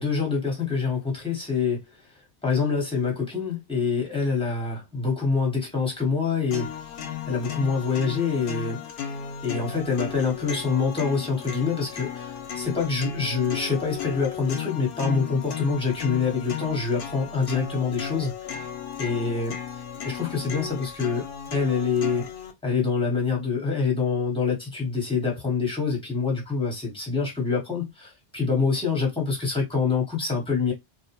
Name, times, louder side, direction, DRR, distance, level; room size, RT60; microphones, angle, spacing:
voice 1, 0.0-1.8 2.4-6.7 7.3-8.8 9.4-18.3 19.0-19.5 20.0-21.2 21.5-22.2 22.6-30.7, left 5 dB, 5° left, 1.0 m, -26 dB
sound 1, 6.5-22.5, left 8 dB, 65° left, 0.7 m, -35 dB
2.5 x 2.0 x 2.8 m
omnidirectional pair, 1.0 m